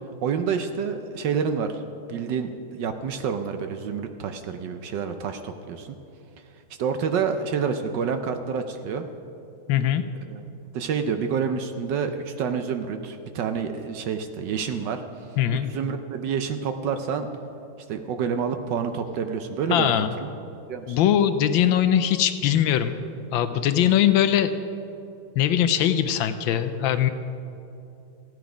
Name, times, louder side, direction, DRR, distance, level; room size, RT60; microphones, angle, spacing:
voice 1, 0.2-1.8 2.1-6.0 6.8-9.1 10.3-10.4 10.7-15.0 15.5-17.3 17.9-20.3 20.7-21.0, right 6 dB, 70° right, 7 dB, 1.2 m, -28 dB
voice 2, 9.7-10.0 15.4-15.7 19.7-20.1 20.9-23.0 23.3-24.5 25.4-27.1, left 10 dB, 75° left, 10 dB, 1.3 m, -21 dB
15.5 x 9.4 x 5.0 m, 2.7 s
omnidirectional pair, 2.3 m